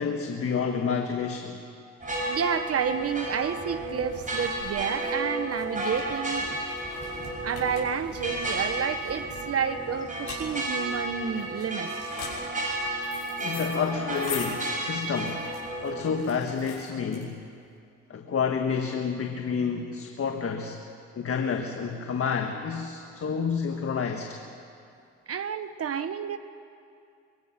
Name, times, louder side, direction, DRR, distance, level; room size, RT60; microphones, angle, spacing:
voice 1, 0.0-1.6 13.4-15.5 15.8-17.4 18.1-20.8 21.1-24.4, left 6 dB, 50° left, 4 dB, 1.6 m, -29 dB
sound 1, 2.0-16.2, right 1 dB, 25° right, 6.4 m, -32 dB
voice 2, 2.2-6.6 7.4-11.9 25.3-26.4, right 7 dB, 50° right, 10 dB, 1.1 m, -30 dB
sound 2, 3.3-17.7, left 6 dB, 90° left, 6.1 m, -44 dB
24.0 x 23.0 x 5.9 m, 2.4 s
cardioid pair, 90°, 30 cm